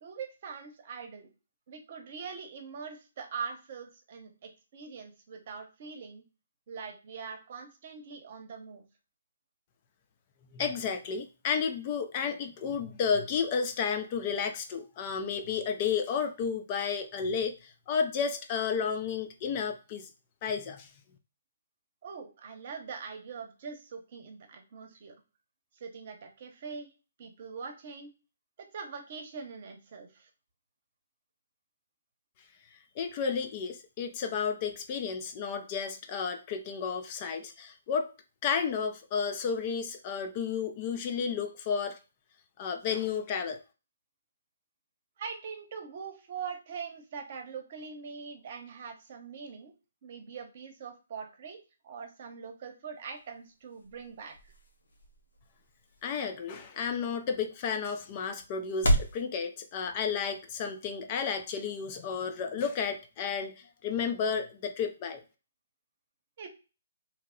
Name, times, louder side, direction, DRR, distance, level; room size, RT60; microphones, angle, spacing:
voice 1, 0.0-1.3 1.7-6.2 6.7-8.8 22.0-25.1 25.8-26.9 27.2-28.1 28.6-30.3 45.2-49.7 50.0-54.3 66.4-66.5, right 6 dB, 50° right, 4 dB, 0.8 m, -42 dB
voice 2, 10.5-20.1 20.4-20.9 33.0-38.1 38.4-42.0 42.6-43.6 56.0-63.5 63.8-65.2, left 6 dB, 35° left, 6 dB, 0.4 m, -32 dB
sound 1, 52.9-59.2, equal, 75° left, 0.9 m, -35 dB
2.9 x 2.0 x 3.7 m, 0.31 s
hypercardioid pair, 150°, 0 cm